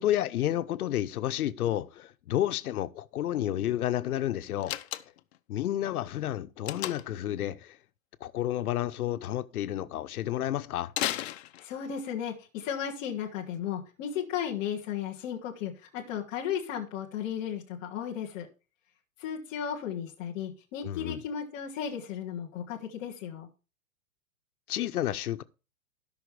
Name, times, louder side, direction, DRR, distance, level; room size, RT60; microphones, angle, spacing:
voice 1, 0.0-4.8 5.5-7.8 8.2-10.9 20.8-21.2 24.7-25.4, left 12 dB, 85° left, 0.9 m, -30 dB
Slam, 4.6-5.4 6.7-7.2 10.9-12.0, left 14 dB, 50° left, 0.7 m, -34 dB
voice 2, 11.4-18.5 19.2-23.5, left 8 dB, 10° left, 0.4 m, -35 dB
17.0 x 5.8 x 3.3 m
supercardioid pair, 165°, 43 cm